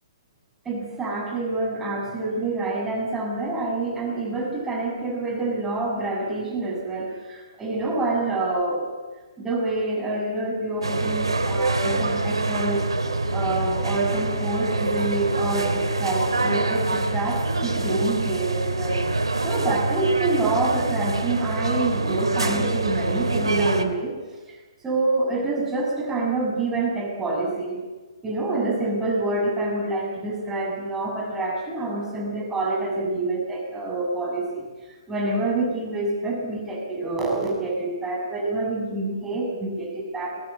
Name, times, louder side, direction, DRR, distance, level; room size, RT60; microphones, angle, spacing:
voice 1, 0.6-9.0 9.4-12.8 13.3-19.0 19.4-24.2 24.5-24.6 24.8-27.8 28.2-34.7 35.1-40.4, right 2 dB, 10° right, -1 dB, 6.9 m, -27 dB
sound 1, 10.8-23.8, right 2 dB, 85° right, 2.4 m, -25 dB
21.0 x 20.5 x 8.6 m, 1.3 s
figure-of-eight pair, 130°, 3 cm